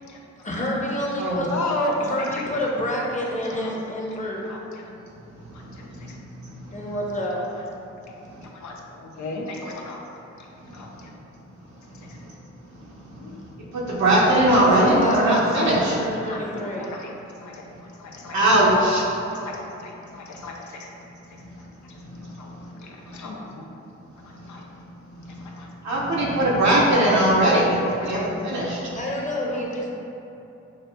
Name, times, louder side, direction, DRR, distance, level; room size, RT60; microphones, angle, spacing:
voice 1, 0.4-1.5 2.0-4.5 6.7-7.4 14.6-16.9 28.9-29.9, left 1 dB, 25° left, -3 dB, 0.9 m, -28 dB
voice 2, 1.5-2.5 3.6-3.7 4.4-4.8 5.5-6.2 7.4-7.5 8.1-10.0 10.4-10.5 10.7-11.1 11.9-12.2 13.1-13.4 15.2-15.8 16.2-16.4 16.8-17.1 17.4-18.4 18.9-20.9 21.8-23.7 24.2-24.7 25.4-25.7 27.0-27.1 28.0-28.2 28.7-28.9 29.5-29.6, left 2 dB, 70° left, -1 dB, 0.6 m, -35 dB
voice 3, 13.7-16.0 18.3-19.1 25.8-27.8 28.0-28.8, right 1 dB, 65° right, -5 dB, 0.8 m, -19 dB
6.3 x 2.4 x 2.2 m, 2.9 s
supercardioid pair, 50°, 31 cm